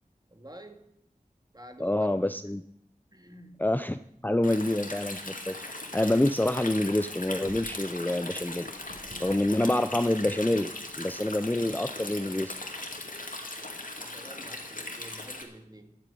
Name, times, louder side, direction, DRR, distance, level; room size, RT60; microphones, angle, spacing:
voice 1, 0.3-0.9 1.5-2.4 3.1-3.6 13.9-16.0, right 1 dB, 25° right, 6 dB, 2.1 m, -48 dB
voice 2, 1.8-2.6 3.6-8.7 9.2-12.6, left 1 dB, 10° left, 10 dB, 0.6 m, -27 dB
sound 1, 3.8-12.9, right 1 dB, 65° right, 4.5 m, -56 dB
Stream, 4.4-15.4, left 2 dB, 70° left, 2.5 m, -39 dB
13.0 x 8.5 x 9.3 m, 0.73 s
wide cardioid pair, 45°, 15 cm